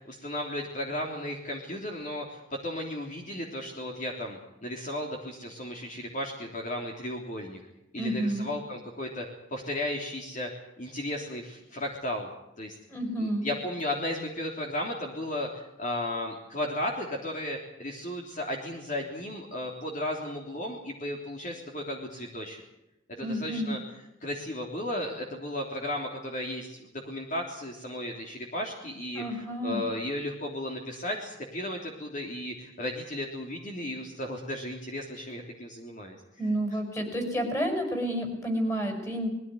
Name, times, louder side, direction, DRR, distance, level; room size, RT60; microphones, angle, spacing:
voice 1, 0.1-7.6 7.9-9.2 9.5-10.5 10.8-12.3 12.6-12.8 13.2-15.5 15.8-22.6 23.2-23.8 24.2-36.2, left 1 dB, 40° left, 1 dB, 3.4 m, -35 dB
voice 2, 8.0-8.5 12.9-13.5 23.2-23.8 29.1-29.8 36.4-39.3, equal, 15° left, 4 dB, 5.9 m, -30 dB
21.5 x 16.0 x 9.3 m, 0.89 s
head